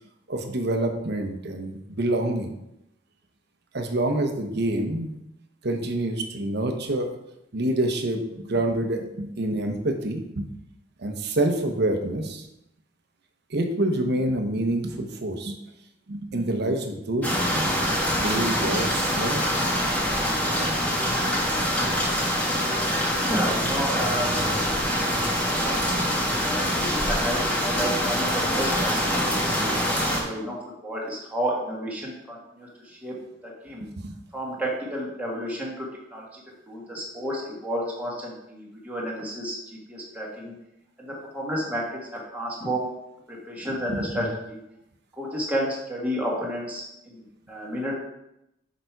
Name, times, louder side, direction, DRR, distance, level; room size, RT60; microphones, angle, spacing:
voice 1, 0.3-2.5 3.7-5.1 5.6-7.1 7.5-10.5 11.0-12.5 13.5-15.6 16.1-17.8 18.2-19.4 33.8-34.1 43.9-44.3, right 1 dB, 60° right, 5 dB, 1.0 m, -27 dB
sound 1, 17.2-30.2, equal, 10° left, 1.5 m, -24 dB
voice 2, 23.2-24.3 25.4-25.8 26.4-29.1 29.6-30.6 30.8-32.7 33.0-33.1 33.4-33.9 34.3-36.4 36.7-39.6 39.9-40.5 41.0-41.8 42.1-42.9 43.3-44.6 45.2-47.9, equal, 10° right, -4 dB, 1.8 m, -31 dB
6.8 x 5.1 x 4.6 m, 0.85 s
head